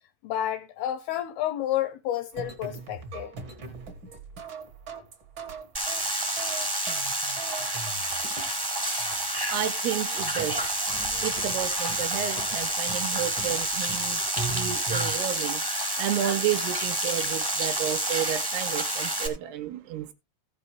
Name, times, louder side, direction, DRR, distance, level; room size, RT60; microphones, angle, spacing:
voice 1, 0.2-3.3, left 12 dB, 80° left, 2.2 m, -30 dB
sound 1, 2.3-15.4, right 4 dB, 60° right, 1.2 m, -40 dB
sound 2, 5.7-19.3, right 1 dB, 25° right, 0.5 m, -29 dB
voice 2, 9.5-10.6 11.2-14.2 14.5-15.6 16.0-20.1, right 11 dB, 80° right, 2.6 m, -31 dB
15.5 x 7.0 x 3.2 m
omnidirectional pair, 5.0 m